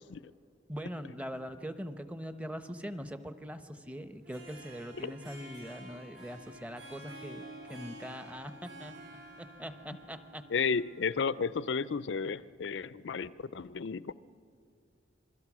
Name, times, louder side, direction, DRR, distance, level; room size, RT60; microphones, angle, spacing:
voice 1, 0.7-8.9 9.4-10.5, equal, 5° right, 10 dB, 0.8 m, -42 dB
Harp, 4.1-11.5, right 1 dB, 75° right, 7.4 m, -50 dB
voice 2, 10.5-14.1, left 5 dB, 75° left, 17 dB, 0.5 m, -33 dB
27.0 x 21.5 x 6.1 m, 2.4 s
head